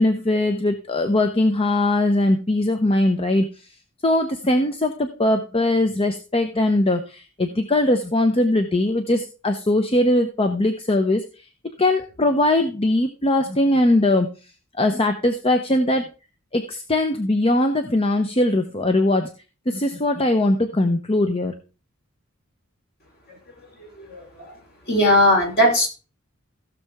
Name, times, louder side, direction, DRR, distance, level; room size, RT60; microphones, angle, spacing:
voice 1, 0.0-3.4 4.0-11.2 11.8-14.3 14.8-16.0 16.5-19.3 19.7-21.5, left 1 dB, 30° left, 7 dB, 0.8 m, -20 dB
voice 2, 24.0-24.5 24.9-25.9, left 1 dB, 50° left, 1 dB, 3.8 m, -18 dB
16.0 x 6.6 x 3.5 m, 0.34 s
head